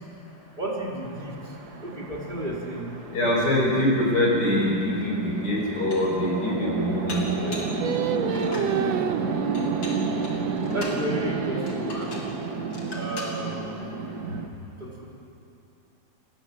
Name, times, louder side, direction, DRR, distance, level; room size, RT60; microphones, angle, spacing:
voice 1, 0.6-1.3 1.8-2.9 10.7-12.2 12.9-13.9 14.8-14.9, right 1 dB, 25° right, -3 dB, 4.3 m, -32 dB
Chatter / Traffic noise roadway noise / Train, 1.0-14.5, right 4 dB, 55° right, 1.9 m, -32 dB
voice 2, 3.1-7.5, left 1 dB, 60° left, -2 dB, 6.5 m, -24 dB
Dishes pots and pans, 5.0-5.1 5.6-6.2 7.1-7.8 8.2-8.7 9.5-11.0 11.7-12.3 12.7-13.4, left 1 dB, 75° left, 4.2 m, -39 dB
Singing, 7.8-13.1, right 8 dB, 80° right, 1.7 m, -31 dB
28.5 x 19.0 x 7.5 m, 2.6 s
omnidirectional pair, 2.1 m